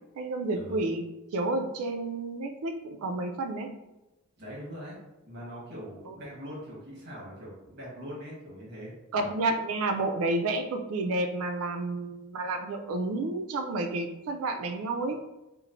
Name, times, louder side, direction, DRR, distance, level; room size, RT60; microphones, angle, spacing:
voice 1, 0.2-1.0 1.3-3.7 6.1-6.2 9.1-15.2, right 2 dB, 70° right, 6 dB, 0.3 m, -30 dB
voice 2, 4.4-5.0 5.2-9.3, equal, 50° right, -6 dB, 1.2 m, -42 dB
3.0 x 2.0 x 2.5 m, 0.99 s
head